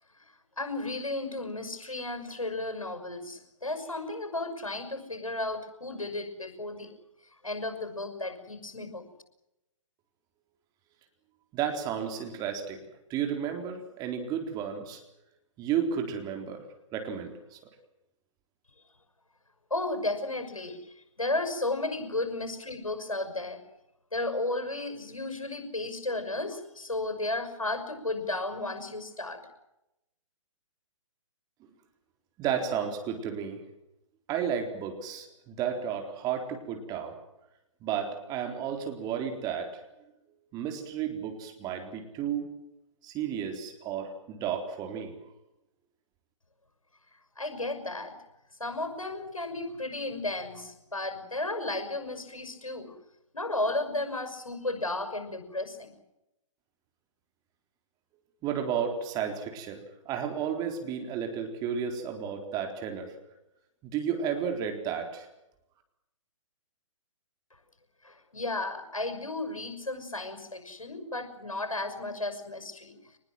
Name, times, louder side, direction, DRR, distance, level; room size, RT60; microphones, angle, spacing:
voice 1, 0.6-6.9 7.4-9.1 19.7-20.8 21.2-23.6 24.1-29.4 47.4-48.1 48.6-52.9 53.3-55.9 68.0-73.0, left 2 dB, 85° left, 7 dB, 6.1 m, -34 dB
voice 2, 11.5-12.8 13.1-15.0 15.6-16.6 16.9-17.6 32.4-33.6 34.3-37.2 37.8-39.7 40.5-42.5 43.0-45.1 58.4-63.1 63.8-65.3, right 8 dB, 20° right, 4 dB, 4.0 m, -32 dB
24.5 x 20.5 x 7.7 m, 0.89 s
figure-of-eight pair, 130°, 17 cm